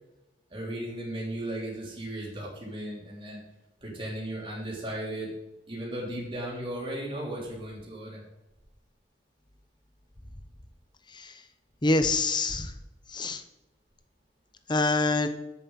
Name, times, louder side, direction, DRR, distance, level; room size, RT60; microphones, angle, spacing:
voice 1, 0.5-3.4 3.8-5.3 5.7-8.2, right 1 dB, 30° right, -5 dB, 3.3 m, -36 dB
voice 2, 11.8-12.7 13.1-13.4 14.7-15.3, left 3 dB, 25° left, 9 dB, 0.8 m, -25 dB
8.3 x 7.2 x 7.4 m, 0.95 s
head